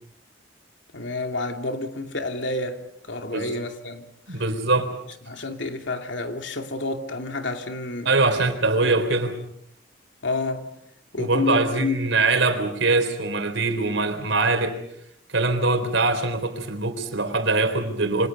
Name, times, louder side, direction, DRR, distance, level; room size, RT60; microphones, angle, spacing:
voice 1, 0.9-4.4 5.2-8.1 8.4-8.5 8.8-8.9 10.2-10.8 11.1-12.0, left 2 dB, 75° left, 2.8 m, -29 dB
voice 2, 4.3-4.9 8.0-9.4 11.2-14.8 15.3-18.3, right 3 dB, 80° right, 3.9 m, -22 dB
29.0 x 25.0 x 5.4 m
head